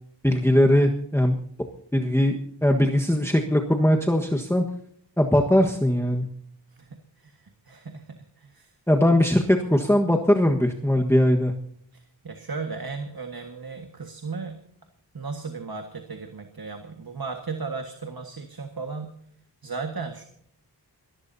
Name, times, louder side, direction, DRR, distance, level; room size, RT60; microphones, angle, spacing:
voice 1, 0.2-1.3 1.9-4.6 5.2-6.3 8.9-11.5, left 1 dB, 5° left, 1 dB, 1.4 m, -20 dB
voice 2, 6.8-8.7 11.9-14.6 15.1-19.1 19.6-20.3, right 4 dB, 55° right, 5 dB, 1.7 m, -36 dB
24.0 x 18.5 x 2.8 m, 0.66 s
wide cardioid pair, 65°, 42 cm